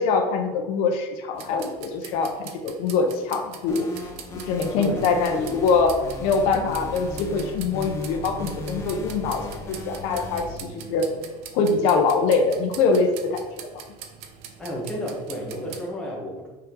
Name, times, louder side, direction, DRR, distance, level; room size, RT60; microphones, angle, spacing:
voice 1, 0.0-3.9 4.5-11.1 11.5-13.7, left 4 dB, 65° left, 4 dB, 0.9 m, -23 dB
sound 1, 1.3-15.9, right 7 dB, 60° right, 0.8 m, -42 dB
sound 2, 3.7-10.5, left 2 dB, 25° left, 1.0 m, -36 dB
voice 2, 14.6-16.5, equal, 5° left, -4 dB, 1.5 m, -31 dB
5.7 x 4.9 x 3.8 m, 1.2 s
cardioid pair, 160°, 12 cm